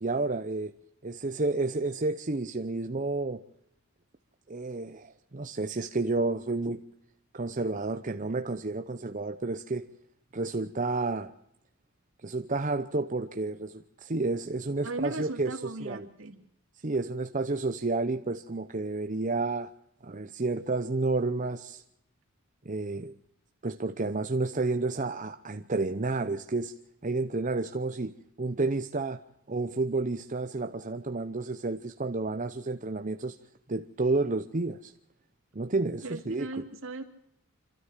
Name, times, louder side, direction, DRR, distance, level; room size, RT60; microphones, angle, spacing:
voice 1, 0.0-0.7 1.0-3.4 4.5-6.8 7.3-9.9 10.3-11.3 12.2-16.1 16.8-19.7 20.0-21.8 22.6-23.1 23.6-26.7 27.0-29.2 29.5-33.4 33.7-34.9 35.5-36.6, right 3 dB, 35° right, 0.8 m, -31 dB
voice 2, 14.8-16.4 36.0-37.0, right 2 dB, 70° right, 2.6 m, -37 dB
27.0 x 13.0 x 7.4 m
head